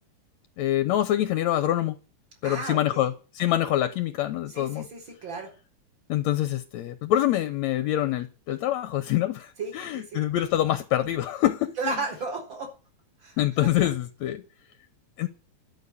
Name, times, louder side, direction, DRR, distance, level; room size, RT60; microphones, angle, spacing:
voice 1, 0.6-2.0 2.4-4.9 6.1-12.0 13.4-14.4 15.2-15.3, left 13 dB, 70° left, 1.9 m, -25 dB
voice 2, 2.4-3.1 4.5-5.5 9.6-10.2 11.8-12.7 13.2-13.4, right 3 dB, 35° right, 4.7 m, -34 dB
12.5 x 6.6 x 9.7 m
omnidirectional pair, 3.9 m